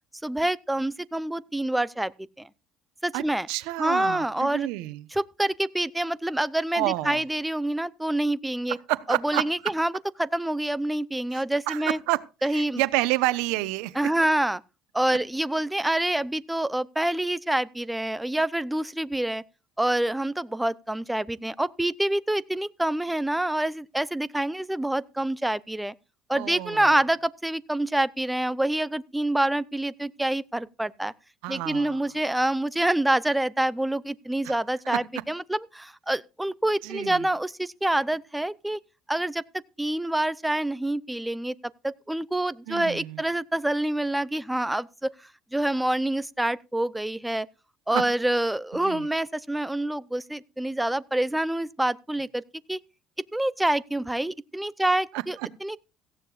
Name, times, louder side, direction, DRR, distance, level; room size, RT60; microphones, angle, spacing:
voice 1, 0.2-2.1 2.4-2.5 3.0-3.5 3.8-4.7 5.1-8.8 9.2-9.9 10.2-12.0 12.4-12.8 14.0-14.6 14.9-19.4 19.8-25.9 26.3-31.1 31.5-38.8 39.1-39.4 39.8-41.5 41.8-45.1 45.5-47.5 47.9-52.4 52.7-52.8 53.3-55.8, right 1 dB, 5° right, 0.6 m, -26 dB
voice 2, 3.1-5.1 6.7-7.2 8.9-9.7 11.3-14.0 26.3-26.9 31.4-32.0 34.4-34.5 34.9-35.0 36.8-37.3 42.7-43.2 47.9-48.0 48.8-49.1 55.1-55.5, right 18 dB, 80° right, 0.9 m, -29 dB
17.0 x 15.0 x 2.5 m
supercardioid pair, 90°, 0 cm